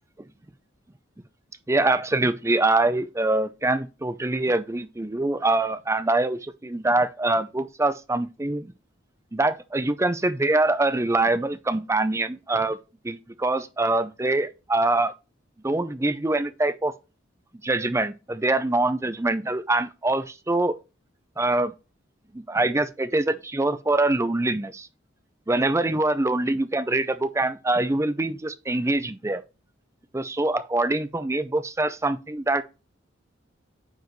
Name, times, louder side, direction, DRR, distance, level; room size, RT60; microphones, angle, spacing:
voice 1, 1.7-8.7 9.3-12.8 13.0-15.1 15.6-16.9 17.6-20.8 21.4-21.7 22.3-24.9 25.5-29.4 30.1-32.6, right 2 dB, 15° right, 0.5 m, -24 dB
9.3 x 5.0 x 3.1 m
head